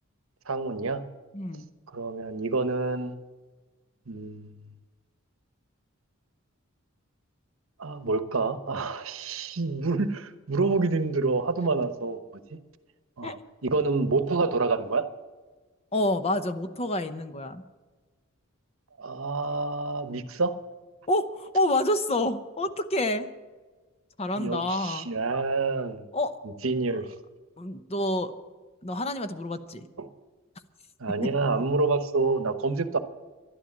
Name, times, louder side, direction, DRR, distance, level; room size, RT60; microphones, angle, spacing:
voice 1, 0.5-1.0 1.9-3.2 4.1-4.5 7.8-12.2 12.5-12.6 13.2-13.3 13.6-15.1 19.0-20.5 24.4-26.1 26.6-27.1 30.0-30.1 31.0-33.0, right 3 dB, 70° right, 10 dB, 1.0 m, -27 dB
voice 2, 1.3-1.6 13.2-13.4 15.9-17.6 21.1-23.3 24.2-25.1 26.1-26.4 27.6-28.3 28.8-29.9 31.2-31.3, left 1 dB, 30° left, 10 dB, 0.8 m, -28 dB
12.5 x 11.5 x 7.3 m, 1.3 s
head